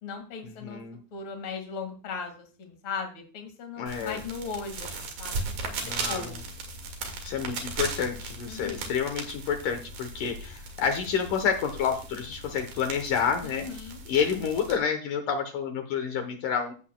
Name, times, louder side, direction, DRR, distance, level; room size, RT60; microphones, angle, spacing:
voice 1, 0.0-0.8 1.1-6.5 8.5-8.9 13.4-14.0, left 5 dB, 40° left, 4 dB, 2.4 m, -38 dB
voice 2, 0.6-1.0 3.8-4.2 5.8-6.2 7.2-13.7 14.1-16.7, left 7 dB, 70° left, 5 dB, 2.5 m, -29 dB
sound 1, 3.9-14.8, right 3 dB, 80° right, 3.6 m, -37 dB
15.0 x 8.2 x 2.2 m, 0.39 s
omnidirectional pair, 4.0 m